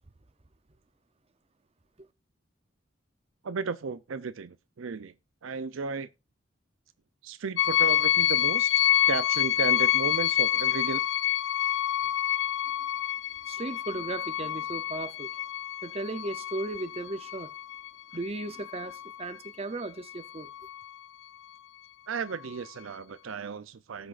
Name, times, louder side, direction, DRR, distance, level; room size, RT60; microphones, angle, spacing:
voice 1, 3.4-5.1 5.4-6.1 7.2-11.0 22.1-24.1, right 5 dB, 85° right, 0.5 m, -34 dB
sound 1, 7.6-19.5 20.1-20.9, left 12 dB, 70° left, 0.6 m, -28 dB
voice 2, 13.5-15.3 15.8-17.5 18.1-20.5, right 2 dB, 30° right, 0.6 m, -36 dB
18.0 x 6.2 x 2.5 m
head